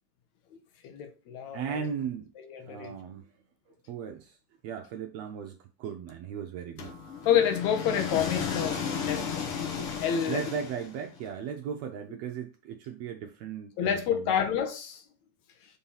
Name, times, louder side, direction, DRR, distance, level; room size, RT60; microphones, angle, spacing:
voice 1, 0.8-1.8 2.4-2.9 7.3-10.4 13.8-15.0, left 8 dB, 75° left, 2.1 m, -29 dB
voice 2, 1.5-2.3 2.7-3.3 3.9-4.4 4.6-7.0 10.3-14.3, right 7 dB, 75° right, 1.7 m, -37 dB
sound 1, 6.8-11.2, left 6 dB, 55° left, 2.0 m, -34 dB
5.5 x 4.2 x 5.5 m
omnidirectional pair, 3.4 m